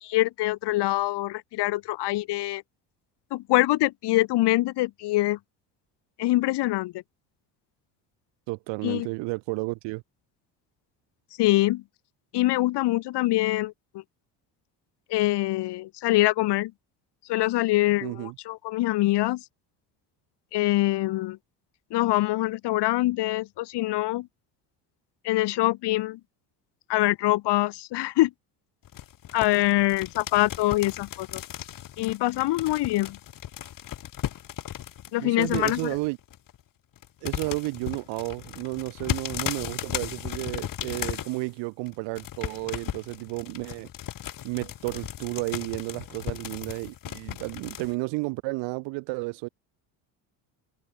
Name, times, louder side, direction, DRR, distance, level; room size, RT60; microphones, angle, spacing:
voice 1, 0.0-2.6 3.3-5.4 6.2-6.9 8.8-9.1 11.4-11.8 12.3-14.0 15.1-16.7 17.3-19.4 20.5-21.4 21.9-24.3 25.2-26.2 26.9-28.3 29.3-31.4 32.0-33.2 35.1-35.9, left 17 dB, 65° left, 1.7 m, -24 dB
voice 2, 8.5-10.0 18.0-18.3 35.2-36.2 37.2-43.9 44.4-49.5, right 26 dB, 75° right, 1.4 m, -32 dB
sound 1, 28.9-35.1 35.4-36.6 37.0-41.5 41.9-47.9, left 11 dB, 45° left, 1.5 m, -36 dB
supercardioid pair, 80°, 44 cm